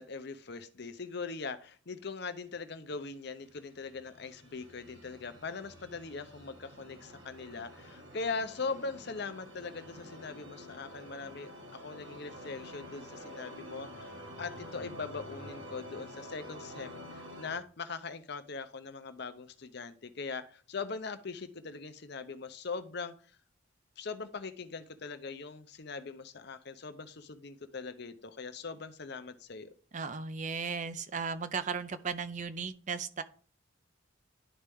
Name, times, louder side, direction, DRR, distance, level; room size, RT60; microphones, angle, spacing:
voice 1, 0.0-23.1 24.0-29.7, left 4 dB, 55° left, 10 dB, 0.7 m, -41 dB
sound 1, 3.2-17.6, equal, 65° right, 1.7 m, -49 dB
voice 2, 29.9-33.2, right 5 dB, 40° right, 11 dB, 0.5 m, -36 dB
11.0 x 4.3 x 3.6 m, 0.41 s
head